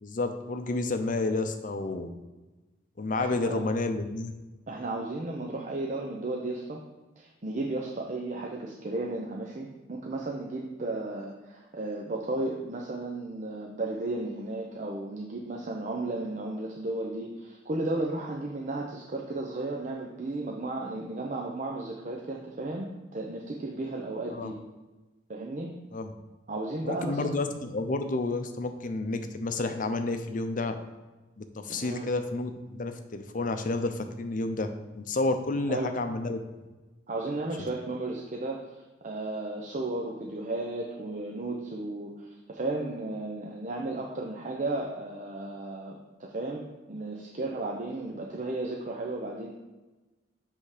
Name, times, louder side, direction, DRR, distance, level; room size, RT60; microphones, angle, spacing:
voice 1, 0.0-2.1 3.0-4.3 24.3-24.5 25.9-26.1 26.8-30.8 31.4-34.7 34.9-36.4, left 2 dB, 45° left, 7 dB, 0.6 m, -30 dB
voice 2, 3.2-3.6 4.7-6.8 7.2-24.6 25.3-25.8 26.5-27.4 31.7-32.1 35.7-35.9 37.1-49.5, right 2 dB, 45° right, -1 dB, 0.7 m, -34 dB
8.0 x 3.6 x 4.9 m, 1.2 s
head